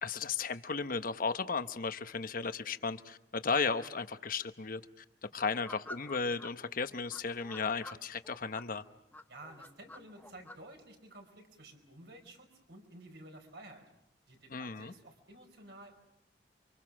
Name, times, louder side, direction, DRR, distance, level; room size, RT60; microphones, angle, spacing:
voice 1, 0.0-5.0 5.3-8.8 14.5-14.9, left 5 dB, 55° left, 10 dB, 1.0 m, -35 dB
sound 1, 5.5-6.5 7.1-8.7 9.1-10.6, left 1 dB, 10° left, 1.1 m, -49 dB
voice 2, 9.3-13.8 14.3-15.9, right 1 dB, 70° right, 4 dB, 4.9 m, -52 dB
29.5 x 25.5 x 6.2 m, 0.81 s
head